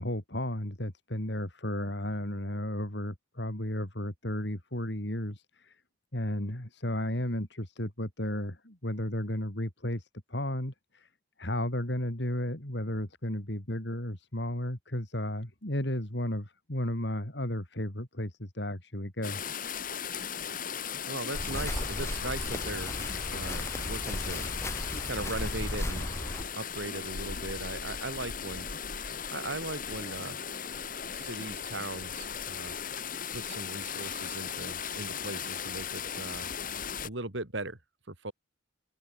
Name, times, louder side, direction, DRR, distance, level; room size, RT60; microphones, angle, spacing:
voice 1, 0.0-5.8 6.1-11.1 11.4-19.4, left 1 dB, 60° left, 3.7 m, -34 dB
sound 1, 19.2-37.1, left 7 dB, 45° left, 2.0 m, -37 dB
voice 2, 21.1-23.0 23.3-24.5 25.0-26.1 26.5-28.7 29.3-30.4 31.0-32.8 33.3-36.5 37.0-37.8 38.1-38.3, right 2 dB, 70° right, 3.3 m, -38 dB
sound 2, 21.3-26.4, left 1 dB, 15° left, 3.1 m, -36 dB
open air
head